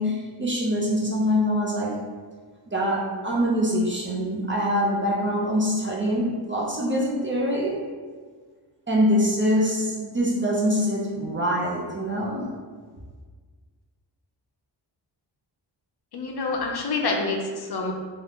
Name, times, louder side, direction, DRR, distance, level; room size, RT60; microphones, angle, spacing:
voice 1, 0.0-2.0 2.7-7.8 8.9-12.5, equal, 25° right, -3 dB, 0.5 m, -24 dB
voice 2, 16.1-17.9, left 3 dB, 55° left, 1 dB, 0.5 m, -27 dB
2.7 x 2.5 x 3.4 m, 1.5 s
wide cardioid pair, 100°, 47 cm